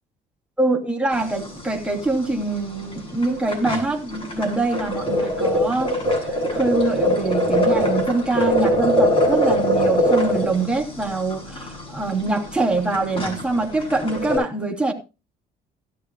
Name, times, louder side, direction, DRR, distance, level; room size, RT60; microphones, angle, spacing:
voice 1, 0.6-5.9 6.3-14.9, right 2 dB, 5° right, 3.2 m, -24 dB
sound 1, 1.1-1.6 1.9-2.0 2.2-2.4 2.9-3.0 3.2-14.4, equal, 30° left, 7.2 m, -22 dB
17.5 x 12.0 x 2.3 m
cardioid pair, 110°, 17 cm